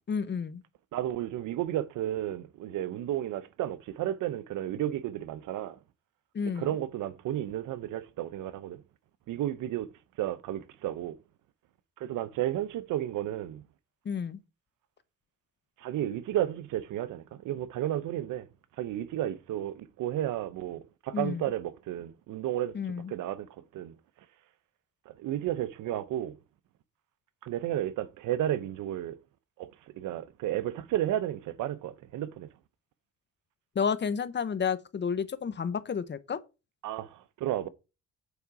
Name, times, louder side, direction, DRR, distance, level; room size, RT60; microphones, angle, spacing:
voice 1, 0.1-0.6 6.3-6.7 14.0-14.4 21.1-21.4 22.7-23.1 33.7-36.4, left 6 dB, 35° left, 0.9 m, -31 dB
voice 2, 0.9-5.8 6.6-8.8 9.3-9.9 10.2-11.2 12.0-13.6 15.8-18.5 18.8-22.8 23.1-23.9 25.1-26.4 27.4-29.2 29.6-29.7 30.0-32.5 36.8-37.7, right 12 dB, 80° right, 0.8 m, -32 dB
8.4 x 4.9 x 4.7 m
cardioid pair, 90°, 30 cm